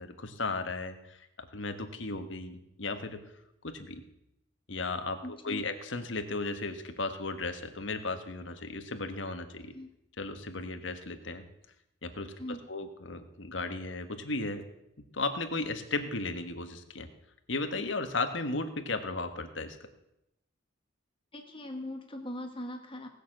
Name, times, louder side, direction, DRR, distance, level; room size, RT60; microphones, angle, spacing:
voice 1, 0.0-3.2 3.6-4.0 4.7-9.7 10.2-11.4 12.0-12.3 12.7-14.6 15.1-17.1 17.5-19.9, left 3 dB, 70° left, 8 dB, 1.4 m, -35 dB
voice 2, 5.2-5.6 9.7-9.9 12.4-12.6 21.3-23.1, left 1 dB, 25° left, 4 dB, 1.3 m, -40 dB
18.0 x 6.7 x 7.7 m, 0.86 s
head